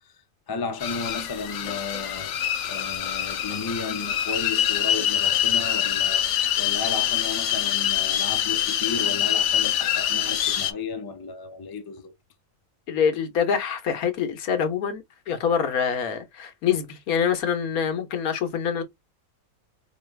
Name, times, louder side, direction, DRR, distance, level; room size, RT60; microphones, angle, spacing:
voice 1, 0.5-12.1, left 4 dB, 35° left, 0.3 m, -34 dB
sound 1, 0.8-10.7, left 10 dB, 65° left, 0.9 m, -25 dB
voice 2, 12.9-18.8, left 7 dB, 80° left, 1.4 m, -25 dB
4.8 x 2.4 x 3.2 m
omnidirectional pair, 1.5 m